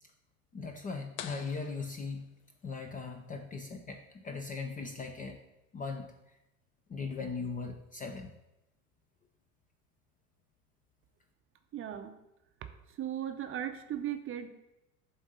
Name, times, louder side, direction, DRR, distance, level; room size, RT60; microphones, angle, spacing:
voice 1, 0.5-2.2 2.6-5.4 5.7-6.1 6.9-8.3, left 4 dB, 20° left, 4 dB, 0.4 m, -39 dB
sound 1, 1.2-2.8, left 10 dB, 65° left, 0.6 m, -47 dB
voice 2, 11.7-12.2 13.0-14.5, right 10 dB, 30° right, 7 dB, 0.6 m, -37 dB
7.5 x 2.6 x 5.4 m, 0.90 s
hypercardioid pair, 80°, 45 cm